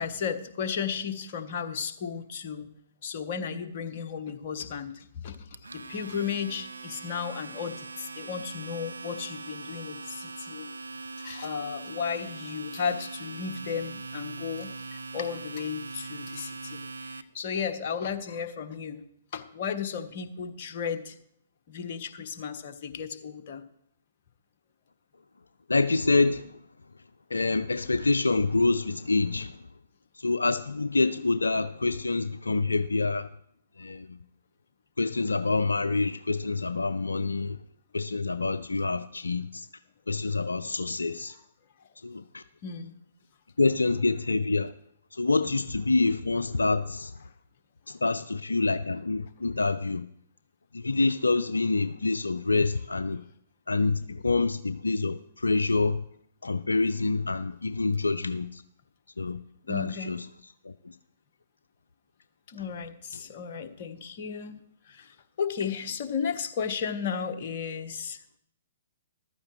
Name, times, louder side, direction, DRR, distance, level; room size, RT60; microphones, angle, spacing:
voice 1, 0.0-2.7 3.0-10.7 11.2-19.0 19.3-21.2 21.7-23.6 41.3-41.4 42.6-42.9 59.7-60.2 62.5-68.2, left 7 dB, 45° left, 1.1 m, -34 dB
Domestic sounds home sounds, 5.3-17.2, right 3 dB, 80° right, 0.6 m, -41 dB
voice 2, 25.7-26.5 27.3-29.5 30.2-33.3 33.8-34.2 35.0-37.6 37.9-39.7 40.1-41.3 42.0-42.4 43.6-44.7 45.2-47.1 47.9-50.0 50.7-53.2 53.7-56.0 56.4-58.6 59.2-59.4 59.7-60.3 60.7-60.8, left 3 dB, 80° left, 0.4 m, -26 dB
14.5 x 12.5 x 3.1 m
figure-of-eight pair, 120°, 0 cm